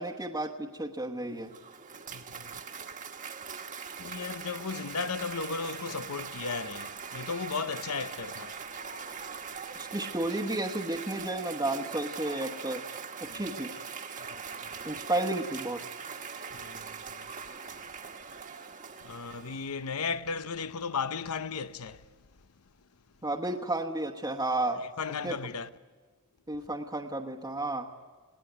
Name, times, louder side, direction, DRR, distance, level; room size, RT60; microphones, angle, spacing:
voice 1, 0.0-1.5 9.8-12.8 13.2-13.7 14.8-15.8 23.2-24.8 25.2-25.3 26.5-27.9, right 2 dB, 15° right, 1.1 m, -32 dB
Cheering / Applause, 1.2-19.9, right 6 dB, 35° right, 1.3 m, -41 dB
voice 2, 2.1-2.6 4.0-8.6 13.3-13.5 14.6-14.8 16.5-17.2 19.0-22.1 24.8-25.7, left 5 dB, 85° left, 0.8 m, -35 dB
21.5 x 17.5 x 9.2 m
head